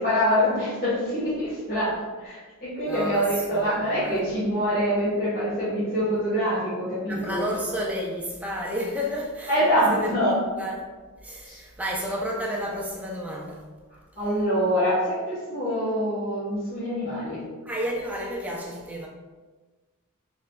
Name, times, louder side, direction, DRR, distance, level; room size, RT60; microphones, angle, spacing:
voice 1, 0.0-7.4 9.5-10.3 11.4-11.6 14.2-17.4, equal, 50° left, 1.4 m, -25 dB
voice 2, 2.8-4.2 7.1-10.1 10.6-10.8 11.2-13.6 17.7-19.1, equal, 5° right, 0.5 m, -31 dB
3.8 x 3.3 x 2.2 m
head